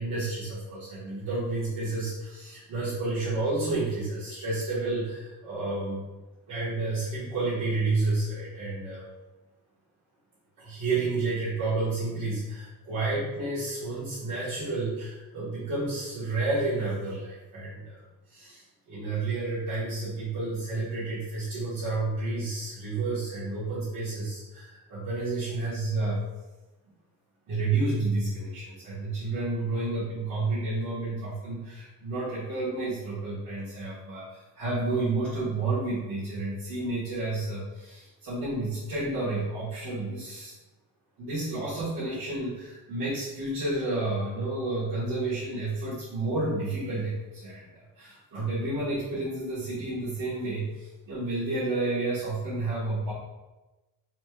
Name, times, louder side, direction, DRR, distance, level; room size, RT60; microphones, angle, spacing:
voice 1, 0.0-6.0 6.5-9.1 10.6-18.0 18.3-26.2 27.5-40.5 41.2-53.1, right 2 dB, 65° right, -12 dB, 1.5 m, -30 dB
4.2 x 3.1 x 2.3 m, 1.1 s
cardioid pair, 130°, 36 cm